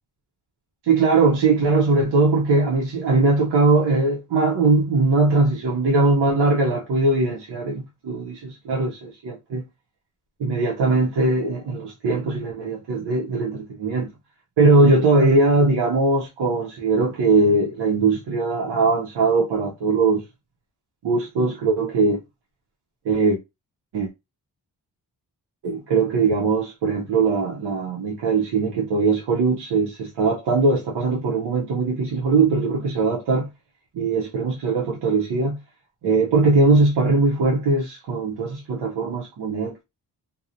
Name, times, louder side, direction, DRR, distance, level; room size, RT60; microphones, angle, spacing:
voice 1, 0.8-9.6 10.4-14.1 14.6-20.2 21.0-22.2 23.0-23.4 23.9-24.1 25.6-33.5 33.9-35.6 36.0-39.8, right 3 dB, 80° right, 0.7 m, -20 dB
2.8 x 2.0 x 2.5 m
wide cardioid pair, 105°, 41 cm